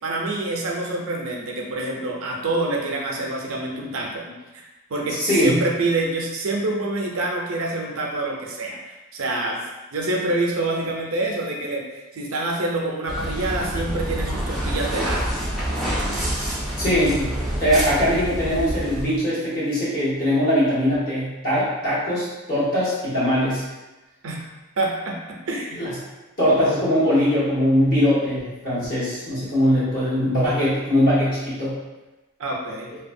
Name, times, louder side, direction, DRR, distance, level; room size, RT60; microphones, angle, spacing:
voice 1, 0.0-4.6 4.9-9.6 9.9-15.4 24.2-24.5 24.8-25.8 32.4-32.9, right 2 dB, 70° right, -1 dB, 0.5 m, -26 dB
voice 2, 5.2-5.6 16.8-23.6 25.7-25.9 26.4-31.7, equal, 40° left, -10 dB, 1.2 m, -21 dB
sound 1, 13.1-19.0, right 1 dB, ahead, 0.4 m, -27 dB
2.7 x 2.2 x 2.5 m, 1.1 s
head